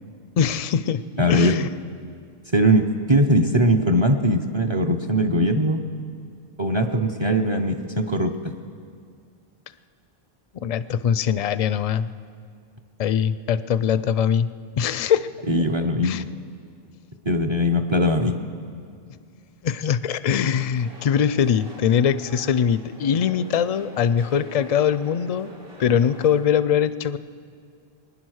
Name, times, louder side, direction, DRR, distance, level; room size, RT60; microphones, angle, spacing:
voice 1, 0.4-1.7 10.6-12.1 13.0-14.5 14.8-15.3 16.0-16.2 19.6-25.5 25.8-27.2, left 8 dB, 50° left, 15 dB, 0.4 m, -22 dB
voice 2, 1.2-1.5 2.5-5.8 6.6-8.5 15.5-16.2 17.2-18.3, equal, 30° right, 6 dB, 0.7 m, -20 dB
sound 1, 20.7-26.4, right 1 dB, 60° right, 3.1 m, -45 dB
22.0 x 9.9 x 6.4 m, 2.2 s
omnidirectional pair, 1.0 m